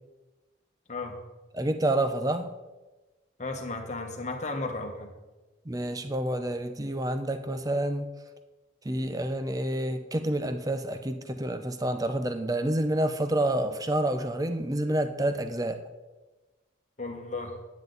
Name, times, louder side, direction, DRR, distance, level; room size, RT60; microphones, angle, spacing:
voice 1, 1.5-2.5 5.7-8.1 8.8-15.8, right 1 dB, 20° right, 9 dB, 0.6 m, -28 dB
voice 2, 3.4-5.1 17.0-17.6, left 3 dB, 40° left, 4 dB, 1.2 m, -34 dB
9.7 x 9.4 x 3.9 m, 1.2 s
head